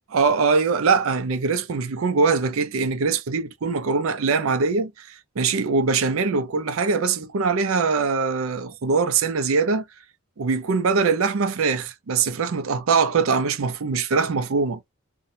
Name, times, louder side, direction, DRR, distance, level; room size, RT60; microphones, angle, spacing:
voice 1, 0.1-9.8 10.4-14.8, right 4 dB, 75° right, 0.5 m, -22 dB
2.6 x 2.2 x 2.7 m
head